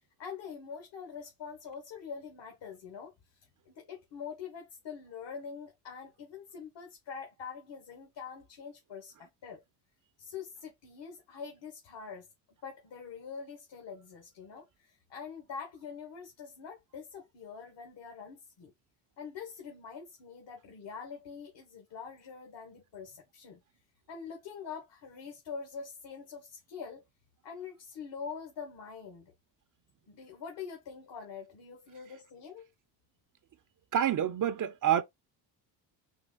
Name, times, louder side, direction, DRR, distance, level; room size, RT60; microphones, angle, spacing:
voice 1, 0.2-9.6 10.2-12.3 12.6-18.7 19.2-23.6 24.1-27.0 27.4-29.3 30.1-32.7, left 6 dB, 60° left, 1.7 m, -44 dB
voice 2, 33.9-35.0, right 10 dB, 40° right, 0.7 m, -27 dB
4.6 x 2.7 x 4.0 m
supercardioid pair, 65°, 48 cm